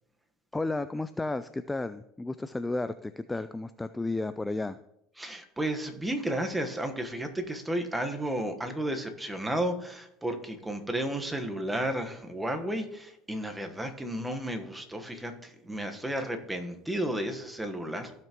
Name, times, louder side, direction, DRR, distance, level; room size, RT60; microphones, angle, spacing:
voice 1, 0.5-4.8, left 2 dB, 10° left, 12 dB, 0.3 m, -33 dB
voice 2, 5.2-18.1, right 1 dB, 10° right, 5 dB, 1.2 m, -33 dB
15.5 x 5.8 x 3.0 m, 0.80 s
supercardioid pair, 100°, 0 cm